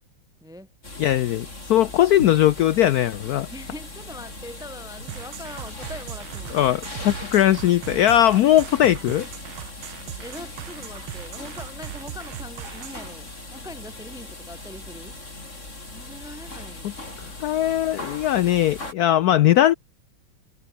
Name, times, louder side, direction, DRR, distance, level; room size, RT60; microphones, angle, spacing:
voice 1, 0.4-0.7 3.5-6.7 10.2-15.2 15.9-16.9, left 1 dB, ahead, 1.7 m, -42 dB
sound 1, 0.8-18.9, left 2 dB, 35° left, 5.8 m, -39 dB
voice 2, 1.0-3.5 6.5-9.3 16.8-16.9 17.2-19.7, left 12 dB, 75° left, 0.8 m, -19 dB
sound 2, 5.1-13.1, right 12 dB, 90° right, 1.8 m, -38 dB
omnidirectional pair, 2.2 m